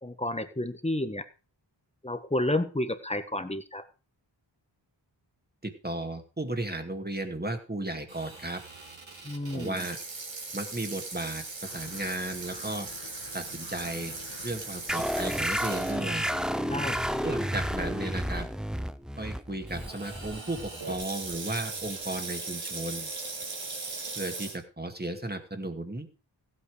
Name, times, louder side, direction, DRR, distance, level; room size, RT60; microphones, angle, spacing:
voice 1, 0.0-1.2 2.0-3.8 9.2-9.8 16.7-17.2, left 1 dB, 15° left, 10 dB, 1.4 m, -31 dB
voice 2, 5.6-8.6 9.5-10.0 10.5-12.9 13.3-14.1 14.4-16.3 17.2-18.5 19.2-23.1 24.2-26.1, right 2 dB, 20° right, 5 dB, 2.3 m, -35 dB
Water tap faucet / Sink (filling or washing), 8.1-16.5 17.0-17.1 17.8-18.1 19.7-24.6, right 3 dB, 80° right, 3.3 m, -39 dB
sound 1, 11.6-18.5, left 5 dB, 70° left, 1.6 m, -49 dB
sound 2, 14.9-22.0, equal, ahead, 0.7 m, -32 dB
15.0 x 8.6 x 4.9 m, 0.35 s
wide cardioid pair, 65°, 45 cm